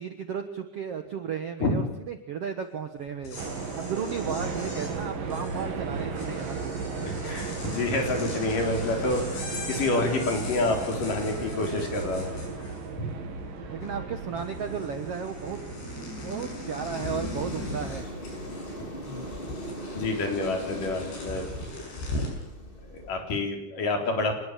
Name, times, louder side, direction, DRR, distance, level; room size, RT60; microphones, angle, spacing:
voice 1, 0.0-3.4 3.7-6.8 13.7-15.6 16.0-18.0, right 7 dB, 85° right, 7 dB, 1.3 m, -34 dB
sound 1, 3.1-13.1 13.4-14.1 14.4-22.4, left 2 dB, 85° left, 9.1 m, -40 dB
sound 2, 3.4-21.7, right 4 dB, 60° right, 4.1 m, -36 dB
voice 2, 7.0-13.1 18.8-18.9 19.9-21.8 22.9-24.3, left 2 dB, 55° left, 3 dB, 5.3 m, -28 dB
sound 3, 16.8-23.2, equal, 20° left, 1.7 m, -40 dB
25.5 x 20.5 x 7.5 m, 0.81 s
omnidirectional pair, 4.8 m